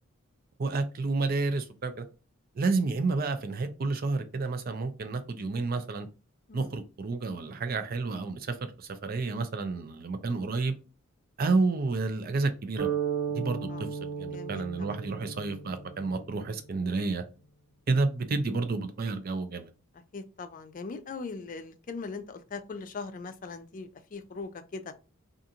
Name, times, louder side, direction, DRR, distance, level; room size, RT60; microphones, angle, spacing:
voice 1, 0.6-2.0 2.6-6.1 6.5-10.8 11.4-12.9 13.3-17.2 17.9-19.7, right 3 dB, 45° right, 0.4 m, -30 dB
sound 1, 12.8-16.7, right 7 dB, 70° right, 1.4 m, -35 dB
voice 2, 14.3-15.0 19.9-24.8, left 4 dB, 40° left, 0.4 m, -40 dB
2.5 x 2.5 x 2.7 m
head